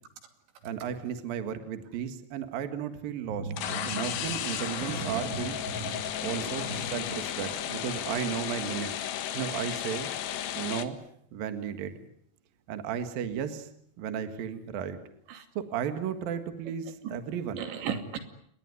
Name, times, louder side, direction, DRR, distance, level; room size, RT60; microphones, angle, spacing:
voice 1, 0.6-3.5 3.9-5.6 6.2-8.9 9.3-10.1 10.5-11.0 11.3-12.0 12.7-13.7 14.0-15.0 15.5-17.7, right 8 dB, 60° right, 9 dB, 3.3 m, -34 dB
voice 2, 3.4-4.4 4.8-5.4 5.7-6.0 6.5-7.0 7.4-7.5 15.3-15.4 17.0-17.1 17.6-18.2, right 6 dB, 85° right, 8 dB, 4.9 m, -37 dB
sound 1, 3.5-10.8, left 10 dB, 70° left, 3.6 m, -34 dB
28.5 x 21.0 x 9.7 m, 0.68 s
omnidirectional pair, 5.1 m